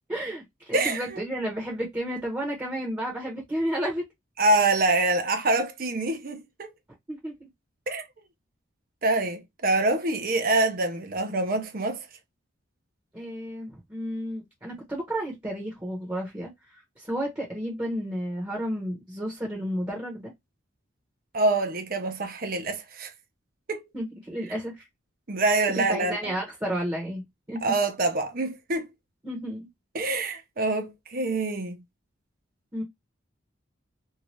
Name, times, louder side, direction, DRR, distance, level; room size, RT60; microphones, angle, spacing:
voice 1, 0.1-4.1 7.1-7.5 13.1-20.3 23.9-24.9 25.7-27.7 29.2-29.7 32.7-32.8, equal, 15° right, 1.0 m, -32 dB
voice 2, 0.7-1.2 4.4-6.7 7.9-8.0 9.0-12.1 21.3-23.1 23.7-23.8 25.3-26.3 27.6-28.9 29.9-31.8, right 2 dB, 45° right, 0.7 m, -25 dB
2.8 x 2.4 x 3.0 m
head